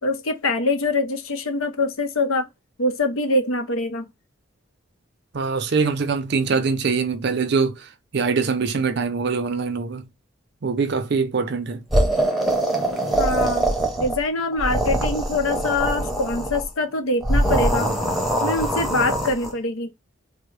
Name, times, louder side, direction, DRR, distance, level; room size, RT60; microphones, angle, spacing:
voice 1, 0.0-2.5 2.8-4.1 13.2-13.7 14.0-17.9 18.4-19.9, left 2 dB, 85° left, 0.7 m, -24 dB
voice 2, 5.3-10.1 10.6-11.8, right 5 dB, 55° right, 0.5 m, -23 dB
sound 1, 11.9-14.2 14.5-16.6 17.2-19.5, right 1 dB, ahead, 0.7 m, -23 dB
3.6 x 2.1 x 3.1 m
head